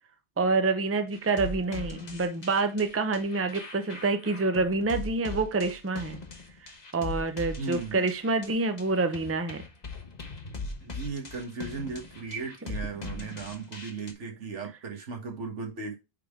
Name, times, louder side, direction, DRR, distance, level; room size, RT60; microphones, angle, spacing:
voice 1, 0.4-6.2 6.6-9.6, right 3 dB, 15° right, 0.6 m, -27 dB
sound 1, 1.1-14.1, left 2 dB, 40° left, 1.2 m, -40 dB
voice 2, 7.6-8.1 10.8-16.0, right 4 dB, 80° right, 1.8 m, -36 dB
9.2 x 3.7 x 3.6 m
omnidirectional pair, 1.2 m